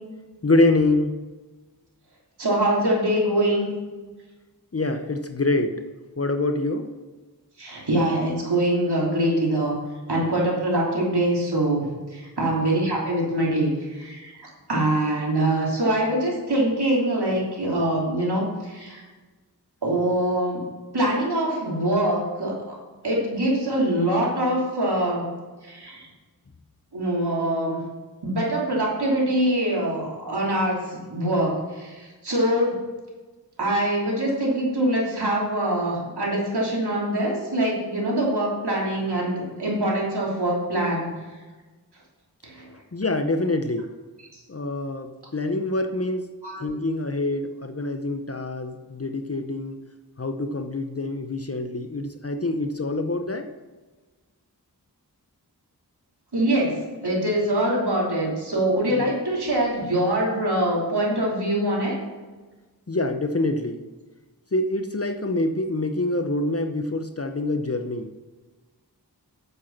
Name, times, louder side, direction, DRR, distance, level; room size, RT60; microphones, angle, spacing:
voice 1, 0.4-1.1 4.7-5.8 6.2-6.9 42.9-43.9 44.5-46.3 46.6-49.8 50.2-53.5 58.9-59.1 62.9-63.8 64.5-68.1, left 2 dB, 40° left, 7 dB, 0.8 m, -25 dB
voice 2, 2.4-3.7 7.6-9.8 10.1-14.3 14.7-19.1 19.8-20.7 20.9-22.8 23.0-25.3 25.6-26.1 26.9-27.8 28.2-32.8 33.6-41.1 42.4-42.7 46.4-46.7 56.3-62.0, right 1 dB, 85° right, -4 dB, 3.1 m, -24 dB
8.2 x 7.6 x 5.9 m, 1.3 s
wide cardioid pair, 40°, 39 cm